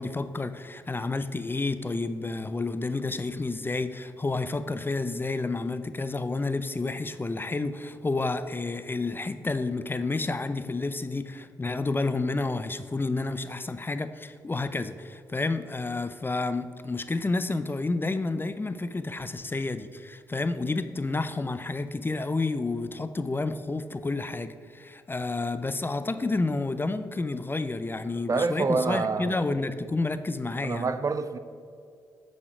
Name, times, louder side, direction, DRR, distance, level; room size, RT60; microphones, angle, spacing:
voice 1, 0.0-30.9, left 3 dB, 25° left, 11 dB, 0.5 m, -30 dB
voice 2, 28.3-29.4 30.6-31.4, right 4 dB, 40° right, 11 dB, 0.5 m, -27 dB
8.7 x 4.3 x 4.7 m, 2.3 s
hypercardioid pair, 45°, 9 cm